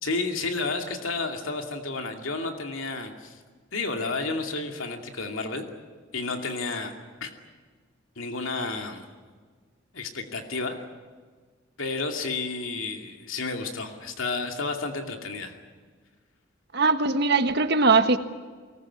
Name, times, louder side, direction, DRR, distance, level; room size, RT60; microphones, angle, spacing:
voice 1, 0.0-3.4 3.7-5.7 6.1-6.9 7.2-7.3 8.2-9.0 9.9-10.8 11.8-15.6, left 3 dB, 85° left, 4 dB, 2.6 m, -31 dB
voice 2, 16.7-18.2, right 3 dB, 55° right, 8 dB, 1.5 m, -20 dB
23.5 x 20.0 x 9.8 m, 1.5 s
head